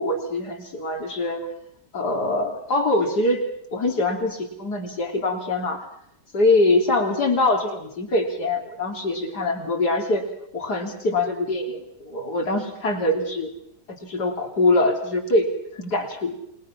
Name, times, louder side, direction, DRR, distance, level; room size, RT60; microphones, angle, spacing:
voice 1, 0.0-1.5 1.9-3.4 3.7-5.9 6.3-10.3 10.5-13.5 13.9-15.5 15.8-16.4, left 2 dB, 70° left, 3 dB, 3.8 m, -23 dB
29.0 x 21.0 x 6.0 m, 0.71 s
omnidirectional pair, 1.8 m